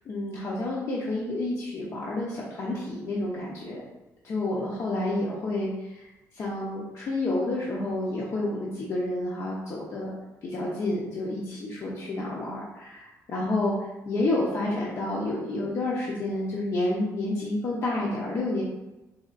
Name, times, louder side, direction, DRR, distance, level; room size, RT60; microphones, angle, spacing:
voice 1, 0.1-3.8 4.2-10.1 10.4-18.6, left 2 dB, 55° left, -5 dB, 0.7 m, -29 dB
4.1 x 3.2 x 2.5 m, 0.99 s
cardioid pair, 115°, 6 cm